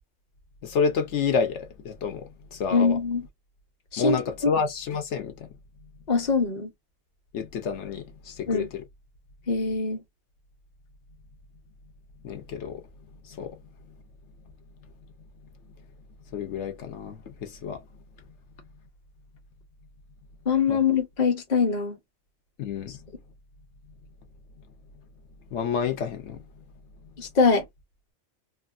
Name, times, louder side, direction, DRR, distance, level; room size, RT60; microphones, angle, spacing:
voice 1, 0.6-3.0 4.0-5.5 7.3-8.8 12.2-12.8 13.3-13.6 16.3-17.8 20.7-20.8 22.6-23.0 25.5-26.4, left 6 dB, 80° left, 1.0 m, -29 dB
voice 2, 2.7-3.2 3.9-4.5 6.1-6.7 8.5-8.7 9.5-10.0 20.5-22.0 27.2-27.6, left 4 dB, 40° left, 0.9 m, -23 dB
2.9 x 2.4 x 2.4 m
omnidirectional pair, 1.2 m